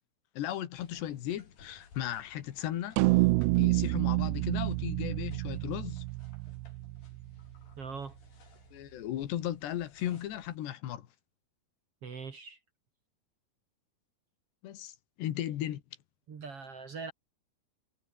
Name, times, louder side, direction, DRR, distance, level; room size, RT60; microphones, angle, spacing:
voice 1, 0.4-3.0 3.6-6.0 8.7-11.1 14.6-15.8, left 12 dB, 85° left, 4.0 m, -36 dB
sound 1, 0.7-10.6, left 5 dB, 60° left, 6.5 m, -59 dB
sound 2, 3.0-7.4, right 22 dB, 90° right, 2.7 m, -28 dB
voice 2, 7.8-8.2 12.0-12.6 16.3-17.1, right 5 dB, 40° right, 2.6 m, -41 dB
omnidirectional pair, 4.8 m